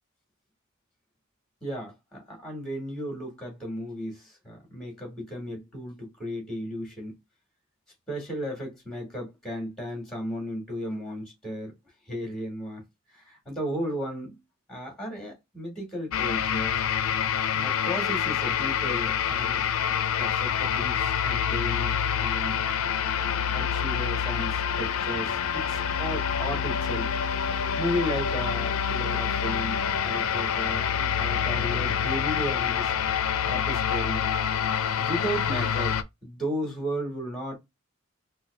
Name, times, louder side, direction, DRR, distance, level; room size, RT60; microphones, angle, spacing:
voice 1, 1.6-7.2 8.1-11.7 12.1-12.8 13.1-14.4 14.7-16.8 17.5-19.6 20.2-22.6 22.8-22.9 23.2-27.1 27.8-32.9 33.4-34.2 35.0-36.0 36.2-37.6, equal, ahead, 2.0 m, -34 dB
sound 1, 16.1-36.0, left 8 dB, 90° left, 0.4 m, -27 dB
3.9 x 2.3 x 3.5 m
head